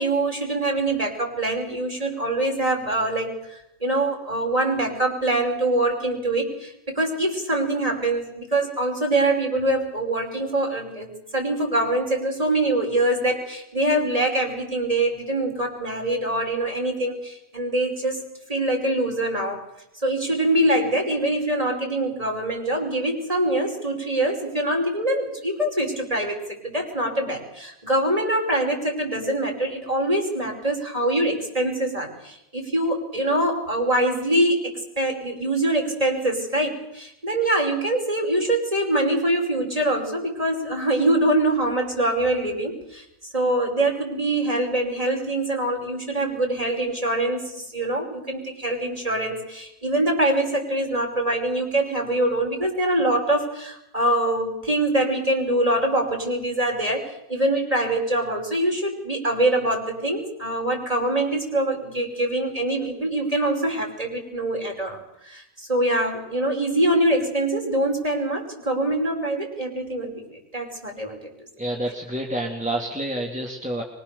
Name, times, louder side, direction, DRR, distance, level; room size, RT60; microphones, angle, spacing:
voice 1, 0.0-18.2 18.5-19.6 20.0-43.0 43.3-71.2, right 1 dB, 35° right, 2 dB, 5.8 m, -24 dB
voice 2, 71.6-73.8, right 1 dB, 5° right, 0 dB, 2.6 m, -28 dB
24.5 x 23.0 x 7.0 m, 0.79 s
omnidirectional pair, 1.1 m